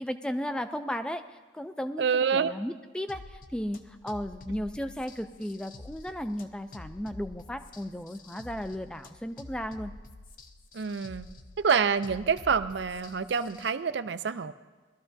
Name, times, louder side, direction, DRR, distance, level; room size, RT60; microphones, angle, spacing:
voice 1, 0.0-2.1 2.3-9.9, equal, 5° left, 8 dB, 0.3 m, -35 dB
voice 2, 2.0-2.5 10.7-11.3 11.6-14.5, right 6 dB, 70° right, 11 dB, 0.5 m, -27 dB
sound 1, 3.1-13.7, left 2 dB, 50° left, 0.7 m, -48 dB
20.5 x 13.0 x 2.6 m, 1.3 s
head